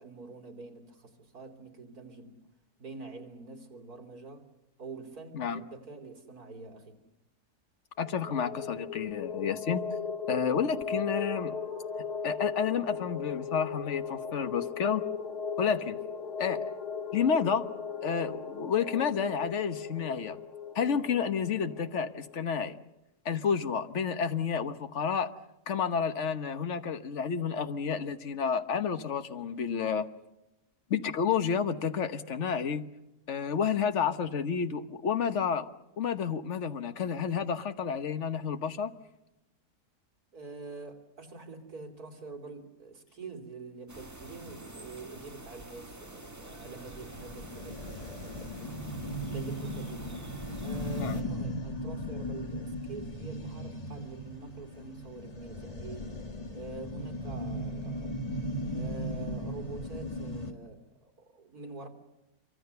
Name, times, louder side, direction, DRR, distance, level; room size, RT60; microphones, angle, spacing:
voice 1, 0.0-2.4 2.8-4.5 4.8-7.0 40.3-49.0 49.3-50.3 50.6-58.2 58.7-61.9, right 3 dB, 70° right, 3.5 m, -46 dB
sound 1, 8.0-22.4, left 6 dB, 90° left, 2.2 m, -37 dB
voice 2, 8.0-9.8 10.3-11.6 12.2-15.1 15.6-16.0 16.4-16.7 17.1-17.7 18.0-20.4 20.7-22.8 23.2-25.3 25.7-30.1 30.9-32.8 33.3-35.7 36.0-38.9 51.0-51.2, left 6 dB, 50° left, 1.4 m, -30 dB
sound 2, 43.9-51.2, right 1 dB, 10° right, 1.5 m, -47 dB
sound 3, 46.5-60.5, equal, 25° left, 1.5 m, -37 dB
27.0 x 24.5 x 6.8 m
omnidirectional pair, 1.6 m